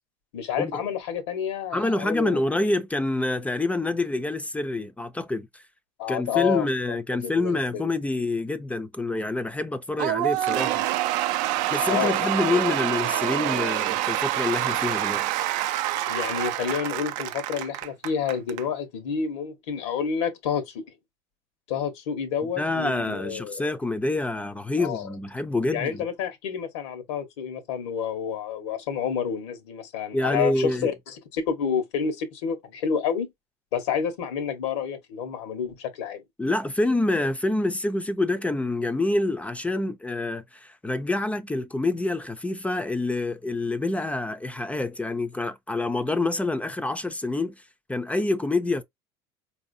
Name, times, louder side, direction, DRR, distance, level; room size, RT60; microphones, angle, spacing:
voice 1, 0.3-2.4 6.0-7.0 7.2-7.8 11.9-12.8 16.1-20.8 21.7-23.6 24.8-25.1 25.7-33.3 33.7-36.2, left 7 dB, 90° left, 1.2 m, -29 dB
voice 2, 1.7-5.6 6.1-10.8 11.7-15.3 22.6-26.0 30.1-30.9 36.4-47.6 47.9-48.8, left 2 dB, 10° left, 0.4 m, -27 dB
Cheering / Applause / Crowd, 10.0-18.6, right 14 dB, 65° right, 0.4 m, -26 dB
4.6 x 2.7 x 2.6 m
supercardioid pair, 110°, 14 cm